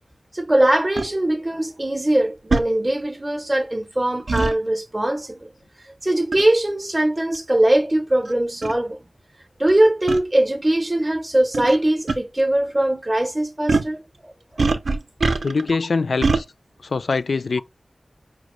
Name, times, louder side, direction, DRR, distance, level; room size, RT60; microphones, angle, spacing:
voice 1, 0.3-5.5 5.8-9.0 9.6-14.7, right 1 dB, 25° right, 0.6 m, -21 dB
sound 1, 1.0-1.1 2.5-2.7 4.3-4.5 6.3-6.5 7.3-7.4 8.3-8.4 8.6-8.8 10.1-10.2 11.5-11.8 12.1-12.2 13.7-13.9 14.6-15.7 16.2-16.4, right 3 dB, 85° right, 0.5 m, -22 dB
voice 2, 15.4-16.5 16.8-17.6, left 4 dB, 80° left, 0.3 m, -23 dB
5.2 x 2.4 x 3.0 m
wide cardioid pair, 70°, 0 cm